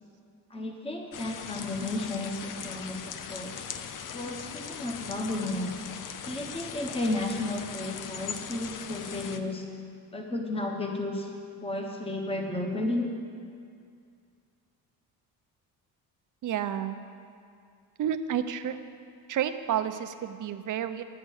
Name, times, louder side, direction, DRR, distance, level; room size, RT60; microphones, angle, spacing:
voice 1, 0.5-3.7 4.1-5.7 6.3-9.7 10.1-11.3 11.6-13.1, left 2 dB, 15° left, 2 dB, 1.1 m, -33 dB
sound 1, 1.1-9.4, left 7 dB, 55° left, 0.7 m, -40 dB
voice 2, 16.4-17.0 18.0-18.8 19.3-21.0, right 9 dB, 55° right, 9 dB, 0.7 m, -30 dB
11.0 x 8.0 x 6.4 m, 2.3 s
cardioid pair, 115°, 37 cm